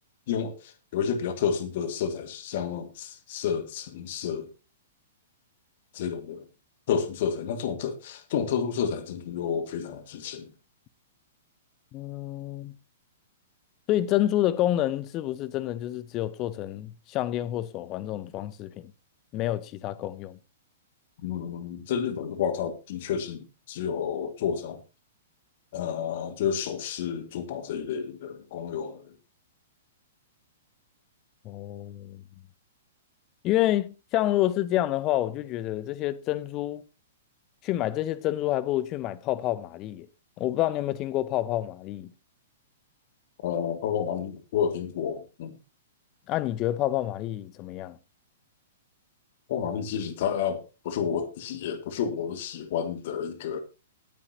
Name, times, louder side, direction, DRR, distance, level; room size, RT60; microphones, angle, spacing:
voice 1, 0.3-4.5 5.9-6.5 6.9-10.5 21.2-24.8 25.7-29.1 43.4-45.5 49.5-53.6, left 7 dB, 45° left, 1.8 m, -30 dB
voice 2, 11.9-12.7 13.9-18.9 19.3-20.4 31.4-32.2 33.4-36.8 37.6-40.1 40.4-42.1 46.3-48.0, left 14 dB, 30° left, 0.8 m, -28 dB
19.0 x 9.9 x 2.8 m
figure-of-eight pair, 110°, 0 cm